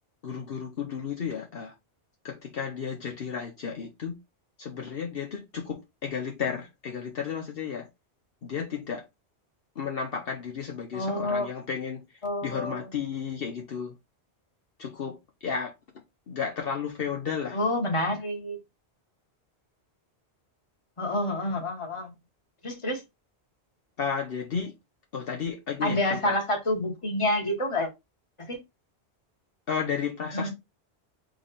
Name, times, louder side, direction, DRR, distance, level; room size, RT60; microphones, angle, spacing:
voice 1, 0.2-1.7 2.2-4.2 4.6-7.9 8.4-9.0 9.8-12.0 12.4-13.9 14.8-15.7 16.3-17.6 24.0-24.7 25.1-26.4 29.7-30.5, left 6 dB, 60° left, 1.0 m, -33 dB
voice 2, 10.9-11.5 12.2-12.8 17.5-18.6 21.0-22.1 22.6-23.0 25.8-27.9 28.4-28.6 30.3-30.5, left 1 dB, 30° left, 1.3 m, -28 dB
3.8 x 3.2 x 4.1 m
omnidirectional pair, 1.1 m